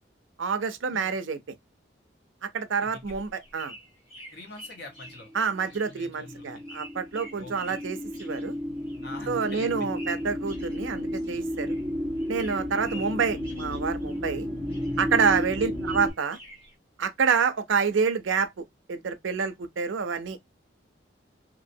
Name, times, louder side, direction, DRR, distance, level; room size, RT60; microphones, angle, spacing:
voice 1, 0.4-1.4 2.4-3.7 5.3-8.5 9.3-11.8 12.3-14.5 15.0-16.4 17.0-20.4, right 5 dB, 90° right, 0.6 m, -28 dB
voice 2, 2.8-3.1 4.3-5.3 5.8-6.6 7.4-7.8 9.0-9.9 12.9-13.0 15.6-15.7, left 2 dB, 55° left, 1.2 m, -44 dB
sound 1, 2.9-11.9 12.1-14.4 14.7-16.7, equal, 30° left, 1.6 m, -48 dB
sound 2, 5.1-16.1, equal, 5° left, 1.1 m, -33 dB
3.0 x 2.7 x 2.6 m
head